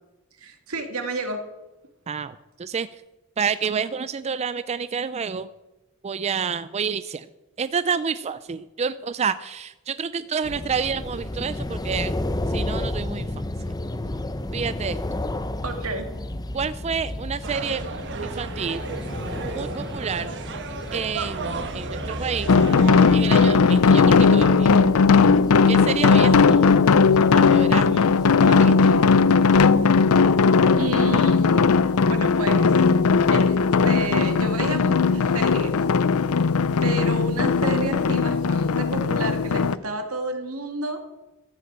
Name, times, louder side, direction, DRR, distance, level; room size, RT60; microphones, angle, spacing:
voice 1, 0.4-1.4 15.6-16.1 30.8-32.8 33.3-33.6 33.8-35.8 36.8-41.0, right 3 dB, 80° right, 6 dB, 2.1 m, -30 dB
voice 2, 2.1-2.9 3.4-5.5 6.0-7.3 7.6-12.2 12.5-13.3 14.5-15.0 16.5-17.9 18.2-18.8 19.5-20.3 20.9-22.5 23.1-24.8 25.7-26.9 27.3-28.1 28.4-28.7, right 6 dB, 30° right, 14 dB, 0.4 m, -29 dB
sound 1, 10.4-29.6, left 1 dB, 20° left, 0.7 m, -33 dB
sound 2, 17.4-23.6, right 4 dB, 55° right, 1.2 m, -33 dB
sound 3, 22.5-39.8, left 5 dB, 85° left, 0.5 m, -18 dB
14.0 x 8.2 x 8.0 m, 1.0 s
head